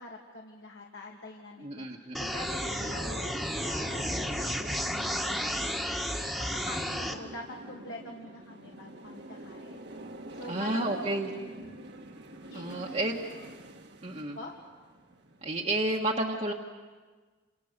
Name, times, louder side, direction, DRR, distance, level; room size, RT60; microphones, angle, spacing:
voice 1, 0.0-5.9 6.3-9.8 10.4-11.0 11.4-11.8 12.5-13.4 14.1-14.5, left 2 dB, 70° left, -2 dB, 2.7 m, -46 dB
voice 2, 1.6-2.3 10.5-11.3 12.5-13.1 14.0-14.4 15.4-16.5, right 1 dB, 35° right, -1 dB, 1.6 m, -31 dB
sound 1, 2.1-7.1, equal, ahead, 1.6 m, -32 dB
sound 2, 2.5-16.0, right 1 dB, 60° right, 1.8 m, -46 dB
28.5 x 28.5 x 6.8 m, 1.4 s
head